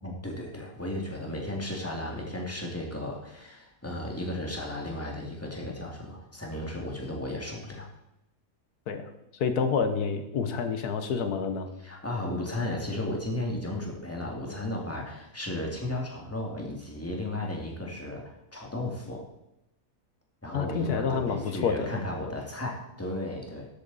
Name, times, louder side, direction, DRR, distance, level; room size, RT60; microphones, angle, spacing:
voice 1, 0.0-7.9 11.8-19.2 20.4-23.7, left 1 dB, 10° left, -1 dB, 2.2 m, -34 dB
voice 2, 8.9-11.7 20.5-21.9, left 5 dB, 90° left, 8 dB, 1.6 m, -28 dB
13.0 x 8.5 x 4.1 m, 0.88 s
omnidirectional pair, 1.6 m